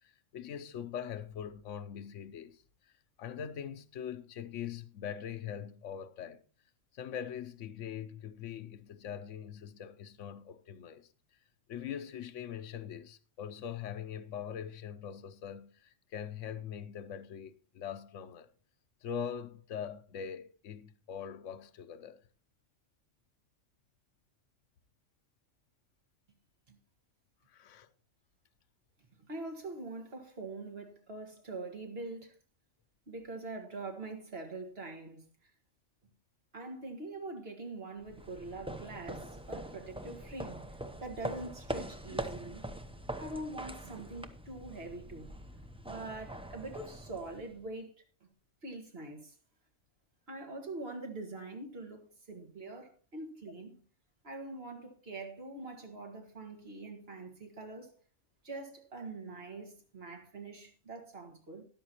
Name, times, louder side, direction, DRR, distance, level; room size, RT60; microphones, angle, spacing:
voice 1, 0.0-2.6 3.2-6.4 6.9-11.1 11.7-18.5 19.0-22.2 27.5-27.9, left 8 dB, 85° left, 1.1 m, -42 dB
voice 2, 29.2-32.4 33.1-35.2 36.5-42.7 43.2-45.3 45.9-48.0 48.6-49.4 50.3-53.8 54.2-57.9 58.4-61.7, right 2 dB, 55° right, 2.0 m, -44 dB
sound 1, 38.0-47.7, right 1 dB, 5° right, 0.5 m, -43 dB
13.0 x 11.0 x 2.9 m
omnidirectional pair, 1.2 m